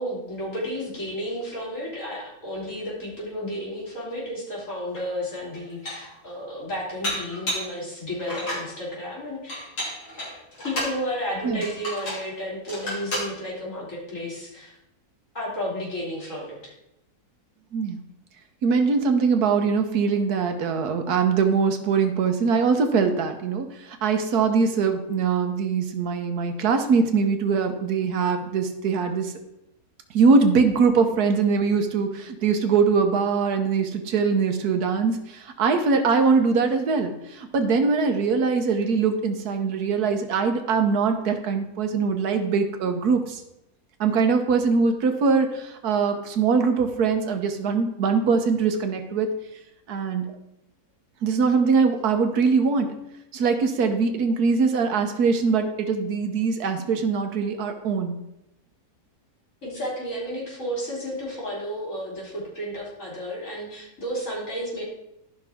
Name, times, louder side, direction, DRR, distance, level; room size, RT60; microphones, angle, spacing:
voice 1, 0.0-9.7 10.6-14.8 15.3-16.7 59.6-64.8, equal, 55° left, -6 dB, 3.9 m, -32 dB
Dishes pots and pans, 5.0-5.1 5.5-6.2 7.0-7.7 8.2-8.7 9.5-11.0 11.6-12.3 12.7-13.3, equal, 80° left, 3.5 m, -31 dB
voice 2, 18.6-29.3 30.1-43.4 44.0-49.3 49.9-50.3 51.2-52.9 53.3-58.1, right 5 dB, 80° right, 6 dB, 1.5 m, -22 dB
14.0 x 5.6 x 3.5 m, 0.87 s
omnidirectional pair, 1.6 m